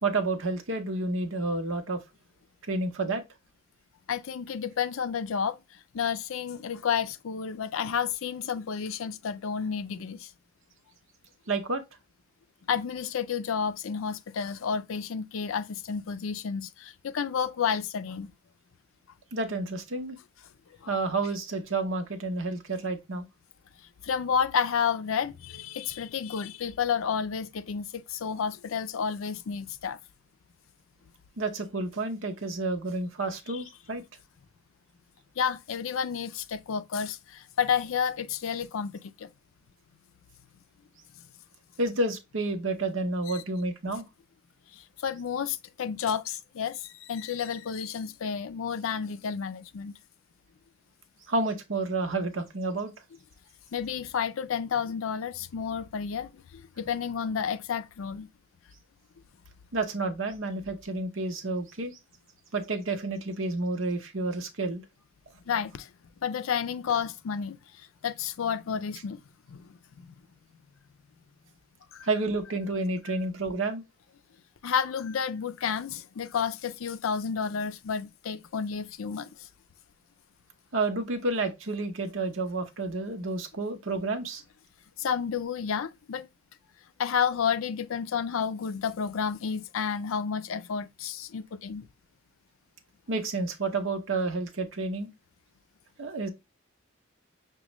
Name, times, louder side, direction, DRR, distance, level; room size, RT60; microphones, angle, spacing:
voice 1, 0.0-2.0 2.7-3.2 11.5-11.8 19.3-20.2 20.9-23.3 31.4-34.0 41.8-44.0 51.3-52.9 59.7-62.0 62.5-64.8 72.0-73.8 80.7-84.4 93.1-95.1 96.0-96.3, right 2 dB, 70° right, 0.8 m, -30 dB
voice 2, 4.1-5.6 5.9-10.3 12.7-18.3 20.8-21.0 24.0-30.0 33.5-33.6 35.4-39.3 43.3-43.4 44.7-49.9 53.7-58.3 65.5-65.9 66.2-67.6 68.0-69.2 69.5-70.1 71.9-72.1 73.1-73.2 74.6-79.3 85.0-86.3 87.0-91.9, left 7 dB, 80° left, 0.4 m, -31 dB
6.1 x 2.2 x 3.0 m
head